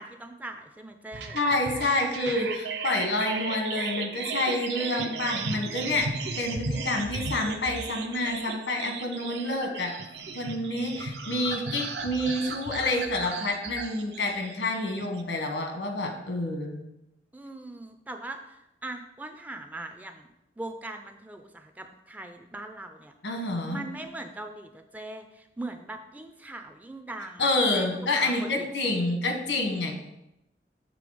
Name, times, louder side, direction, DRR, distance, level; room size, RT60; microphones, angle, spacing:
voice 1, 0.0-1.4 17.3-20.3 20.6-23.1 23.7-28.7, right 2 dB, 10° right, 6 dB, 0.3 m, -41 dB
sound 1, 1.1-15.2, right 4 dB, 70° right, 0.6 m, -35 dB
voice 2, 1.3-6.1 6.4-9.9 10.3-16.8 23.2-23.9 27.4-30.0, left 2 dB, 85° left, 3 dB, 1.3 m, -28 dB
6.9 x 3.7 x 4.9 m, 0.88 s
head